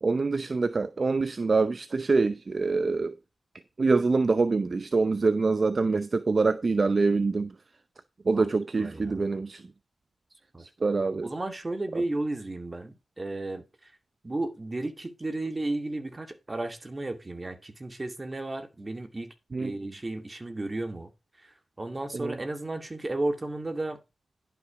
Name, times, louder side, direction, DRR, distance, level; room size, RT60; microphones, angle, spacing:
voice 1, 0.0-3.1 3.8-7.5 8.3-9.6 10.8-11.3 19.5-19.7 22.1-22.3, right 4 dB, 50° right, 0.7 m, -25 dB
voice 2, 8.8-9.2 10.5-10.6 11.2-13.9 14.2-21.1 21.4-24.0, right 2 dB, 30° right, 2.2 m, -34 dB
11.0 x 6.0 x 5.0 m
cardioid pair, 50°, 0 cm